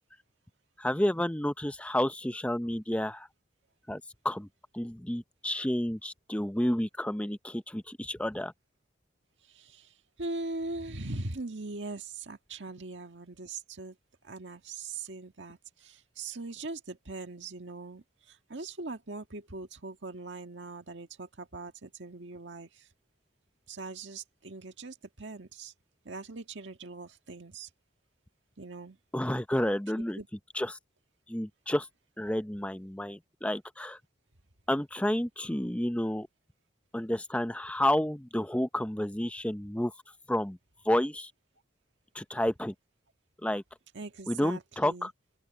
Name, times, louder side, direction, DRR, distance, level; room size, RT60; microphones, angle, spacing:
voice 1, 0.8-3.3 3.9-4.5 4.7-8.5 29.1-30.2 30.5-30.8 31.3-31.9 32.2-34.0 34.7-36.3 36.9-39.9 40.3-40.6 40.8-41.3 42.1-42.7 43.4-43.6 44.3-45.1, left 1 dB, 5° left, 0.7 m, -30 dB
voice 2, 9.5-13.9 14.2-22.9 23.7-25.7 26.0-27.7 28.6-29.0 30.2-30.3 43.9-45.1, right 3 dB, 80° right, 1.7 m, -41 dB
open air
head